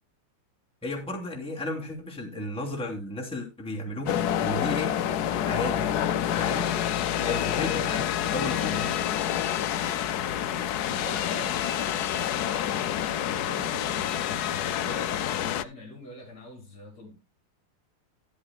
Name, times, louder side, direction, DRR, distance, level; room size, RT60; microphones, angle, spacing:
voice 1, 0.8-4.9 5.4-5.9 6.4-6.7 7.2-9.0, left 1 dB, 5° left, 2.6 m, -34 dB
sound 1, 4.1-15.6, left 10 dB, 70° left, 0.9 m, -28 dB
voice 2, 7.2-7.5 10.8-17.2, left 2 dB, 50° left, 3.2 m, -43 dB
13.0 x 11.0 x 2.2 m
omnidirectional pair, 2.3 m